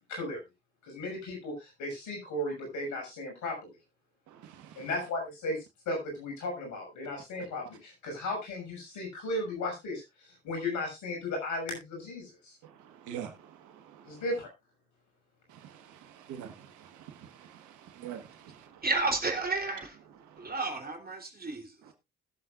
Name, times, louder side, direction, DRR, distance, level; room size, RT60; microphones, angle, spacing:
voice 1, 0.1-0.4 0.8-3.7 4.8-12.6 14.0-14.5, left 2 dB, 80° left, 6.4 m, -35 dB
voice 2, 4.3-4.9 12.6-14.2 15.5-18.8 20.2-20.6 21.8-21.9, right 9 dB, 85° right, 1.5 m, -46 dB
voice 3, 18.8-19.9 20.4-21.7, right 3 dB, 30° right, 3.4 m, -31 dB
20.5 x 7.7 x 2.5 m
supercardioid pair, 50°, 29 cm